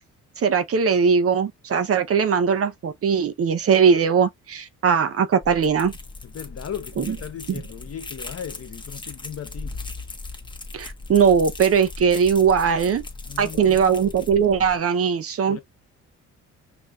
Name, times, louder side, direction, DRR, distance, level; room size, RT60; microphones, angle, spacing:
voice 1, 0.4-5.9 7.0-7.2 10.7-13.0 13.4-15.6, right 6 dB, 50° right, 0.8 m, -20 dB
sound 1, 5.4-14.8, left 3 dB, 15° left, 1.4 m, -38 dB
voice 2, 6.2-9.7 13.2-14.0 15.5-15.6, left 8 dB, 55° left, 1.2 m, -37 dB
5.5 x 2.9 x 2.5 m
cardioid pair, 90°, 30 cm